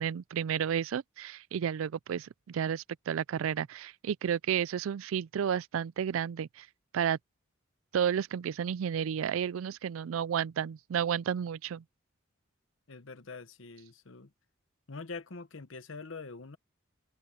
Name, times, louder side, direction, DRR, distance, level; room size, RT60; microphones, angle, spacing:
voice 1, 0.0-6.7 6.9-7.2 7.9-11.8, right 8 dB, 85° right, 0.3 m, -32 dB
voice 2, 12.9-14.3 14.9-16.6, left 4 dB, 75° left, 1.0 m, -44 dB
open air
head